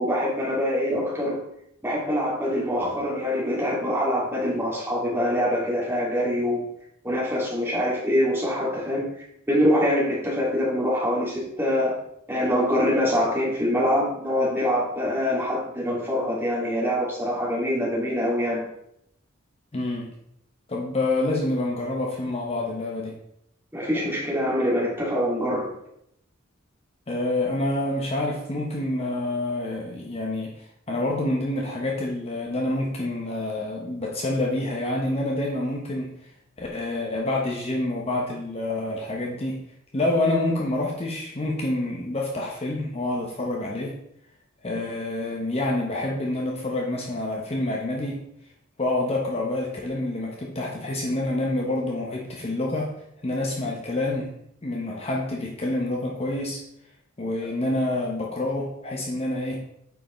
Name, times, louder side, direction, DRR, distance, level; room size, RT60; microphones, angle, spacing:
voice 1, 0.0-1.4 1.8-6.6 7.0-9.1 9.5-11.9 12.3-18.6 23.7-25.7, equal, 10° right, -5 dB, 2.2 m, -24 dB
voice 2, 19.7-20.1 20.7-23.2 27.1-36.1 36.6-39.6 39.9-43.9 44.6-48.2 48.8-52.9 53.2-54.3 54.6-56.6 57.2-59.6, left 2 dB, 30° left, -2 dB, 0.9 m, -27 dB
8.9 x 4.8 x 3.1 m, 0.76 s
head